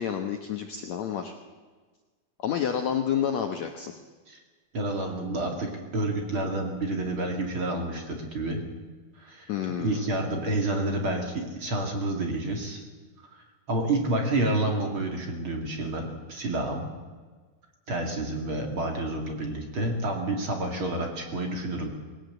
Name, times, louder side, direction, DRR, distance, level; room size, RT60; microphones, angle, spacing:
voice 1, 0.0-1.3 2.4-4.0 9.5-10.1, left 8 dB, 90° left, 5 dB, 1.5 m, -29 dB
voice 2, 4.7-8.6 9.2-9.5 9.8-12.8 13.7-16.9 17.9-21.9, right 2 dB, 35° right, 2 dB, 2.7 m, -29 dB
19.5 x 18.5 x 7.9 m, 1.4 s
omnidirectional pair, 4.8 m